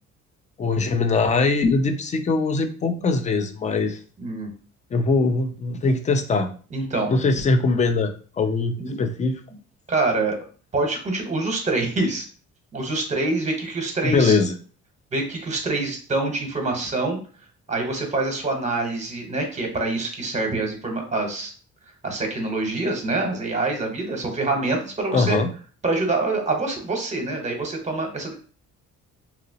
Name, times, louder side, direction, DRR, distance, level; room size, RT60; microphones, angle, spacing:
voice 1, 0.6-4.0 4.9-6.5 7.1-9.4 14.0-14.5 25.1-25.5, left 3 dB, 25° left, 7 dB, 0.4 m, -21 dB
voice 2, 4.2-4.5 6.7-7.1 8.8-9.0 9.9-10.4 10.7-12.3 12.7-14.4 15.1-17.2 17.7-21.5 22.0-25.4 25.8-28.3, right 2 dB, 25° right, 3 dB, 0.9 m, -25 dB
2.8 x 2.8 x 2.8 m, 0.40 s
cardioid pair, 120°, 29 cm